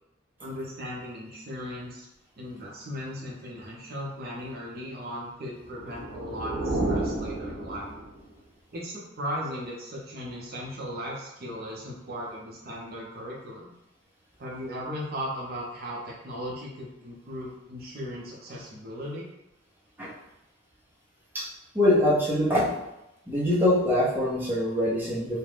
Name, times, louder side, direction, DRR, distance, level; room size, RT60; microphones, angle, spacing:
voice 1, 0.4-2.1 2.4-7.9 8.7-13.7 14.4-19.3, equal, 50° right, -4 dB, 0.6 m, -37 dB
sound 1, 5.6-8.3, right 2 dB, 80° right, 0.9 m, -31 dB
voice 2, 21.7-22.7 23.3-25.4, left 1 dB, 10° right, -8 dB, 0.7 m, -23 dB
2.4 x 2.1 x 3.2 m, 0.89 s
head